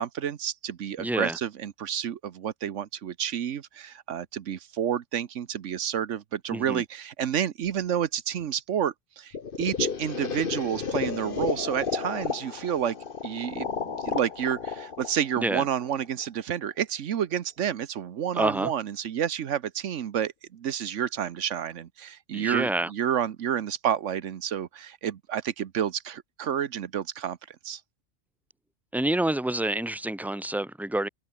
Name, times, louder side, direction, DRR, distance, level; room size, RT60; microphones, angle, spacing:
voice 1, 0.0-13.0 13.2-27.8, right 9 dB, 85° right, 1.2 m, -30 dB
voice 2, 1.0-1.4 6.5-6.8 15.4-15.6 18.3-18.7 22.3-22.9 28.9-31.1, right 1 dB, ahead, 1.5 m, -28 dB
sound 1, 9.3-16.2, left 5 dB, 50° left, 1.4 m, -33 dB
omnidirectional pair, 1.2 m